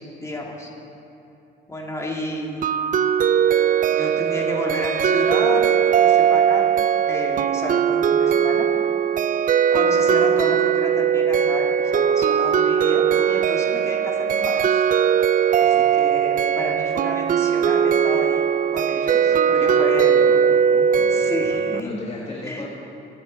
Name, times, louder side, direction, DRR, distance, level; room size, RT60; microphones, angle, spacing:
voice 1, 0.2-0.7 1.7-2.6 3.8-6.7 7.1-8.7 9.7-14.6 15.6-18.5 18.7-20.2 21.1-22.0 22.4-22.7, left 1 dB, 15° left, -2 dB, 2.7 m, -30 dB
sound 1, 2.6-21.8, right 8 dB, 45° right, 0.4 m, -19 dB
voice 2, 19.5-20.4 20.7-22.7, left 2 dB, 30° left, -4 dB, 1.8 m, -36 dB
23.0 x 7.9 x 4.3 m, 2.9 s
cardioid pair, 90°, 20 cm